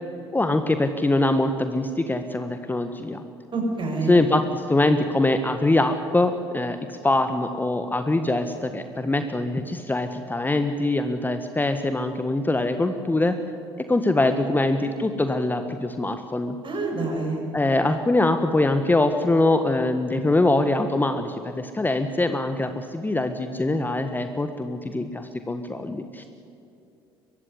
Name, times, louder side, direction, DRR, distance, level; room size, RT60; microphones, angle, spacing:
voice 1, 0.3-3.2 4.1-13.3 13.9-16.6 17.5-26.2, left 2 dB, 15° left, 8 dB, 1.5 m, -23 dB
voice 2, 3.5-4.2 16.6-17.4, right 3 dB, 40° right, 2 dB, 6.9 m, -27 dB
23.5 x 15.0 x 10.0 m, 2.6 s
figure-of-eight pair, 55°, 13 cm